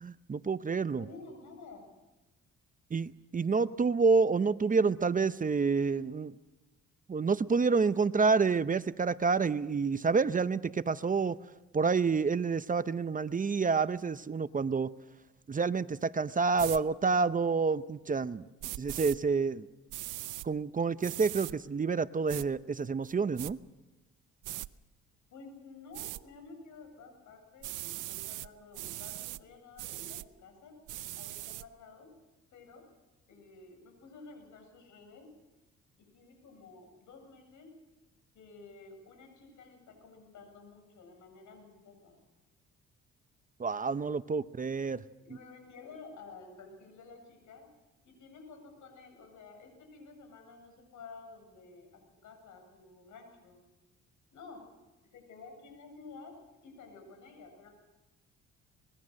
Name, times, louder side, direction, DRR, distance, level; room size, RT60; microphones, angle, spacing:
voice 1, 0.0-1.0 2.9-6.3 7.1-11.4 11.7-14.9 15.5-18.4 18.8-19.6 20.4-23.6 43.6-45.0, right 4 dB, 25° right, 14 dB, 0.7 m, -28 dB
voice 2, 0.9-1.9 25.3-30.7 31.1-32.1 32.5-32.8 33.3-35.3 36.0-37.8 38.3-42.2 44.3-44.4 45.2-47.7 48.0-53.6 54.3-54.7 55.1-57.7, left 4 dB, 75° left, 5 dB, 7.8 m, -52 dB
sound 1, 16.6-16.8 18.6-19.2 19.9-20.5 21.0-21.5 22.3-22.5 23.0-23.5 24.4-24.7 25.9-26.2 27.6-28.5 28.7-29.4 29.8-30.3 30.9-31.6, right 16 dB, 85° right, 0.7 m, -40 dB
24.5 x 21.0 x 6.5 m, 1.1 s
cardioid pair, 90°, 30 cm